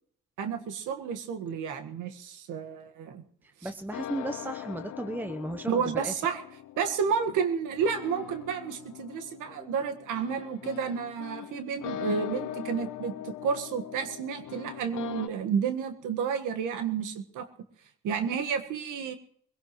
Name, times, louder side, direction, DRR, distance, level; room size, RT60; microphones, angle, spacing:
voice 1, 0.4-3.2 5.7-6.4 6.8-17.5 18.0-19.2, right 6 dB, 90° right, 7 dB, 1.6 m, -31 dB
voice 2, 3.4-6.1, right 1 dB, 5° right, 8 dB, 0.8 m, -35 dB
sound 1, 3.9-15.3, left 12 dB, 85° left, 0.9 m, -41 dB
23.0 x 17.0 x 3.1 m, 0.65 s
cardioid pair, 90°, 30 cm